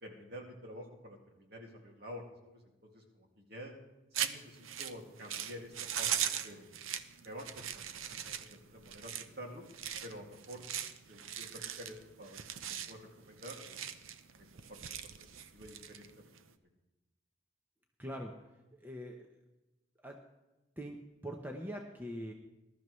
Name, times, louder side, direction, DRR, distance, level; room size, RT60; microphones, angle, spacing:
voice 1, 0.0-3.7 4.1-6.6 7.2-9.6 10.0-10.7 11.1-14.1 14.3-15.3 15.5-16.5, equal, 50° right, 1 dB, 2.3 m, -50 dB
sound 1, 4.1-16.5, right 9 dB, 80° right, 0.7 m, -40 dB
voice 2, 18.0-18.3 18.8-19.3 20.0-20.2 20.8-21.0 21.2-22.3, equal, 10° right, 2 dB, 0.8 m, -42 dB
20.5 x 12.5 x 3.2 m, 1.0 s
head